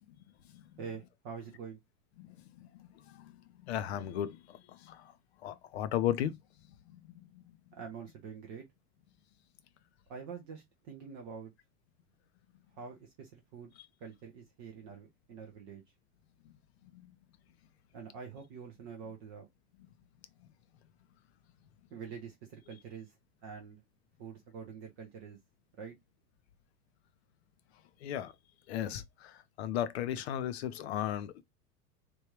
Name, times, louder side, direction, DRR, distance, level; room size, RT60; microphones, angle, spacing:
voice 1, 0.8-1.8 7.7-8.7 10.1-11.5 12.7-13.7 14.0-15.8 17.9-19.5 21.9-23.1 23.4-23.8 24.2-25.4 25.8-26.0, right 6 dB, 20° right, 0.3 m, -46 dB
voice 2, 2.2-5.1 5.4-6.4 6.9-7.6 16.9-17.1 28.0-28.3 28.7-31.4, left 11 dB, 45° left, 0.4 m, -36 dB
3.4 x 2.3 x 2.9 m
figure-of-eight pair, 85°, 48 cm